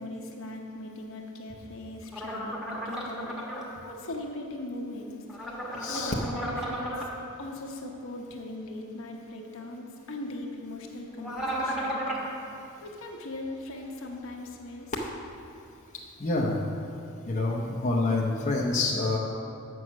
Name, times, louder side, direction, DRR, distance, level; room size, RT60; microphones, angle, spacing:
voice 1, 0.0-3.6 3.8-5.2 5.9-6.9 7.4-12.0 12.8-14.9, left 2 dB, 65° left, 1 dB, 1.0 m, -39 dB
sound 1, 2.1-3.6 5.3-7.1 11.2-12.3, equal, ahead, 1.2 m, -33 dB
voice 2, 5.8-6.1 16.2-16.6 17.3-19.2, left 2 dB, 35° left, -2 dB, 0.7 m, -27 dB
7.7 x 6.2 x 6.1 m, 2.5 s
head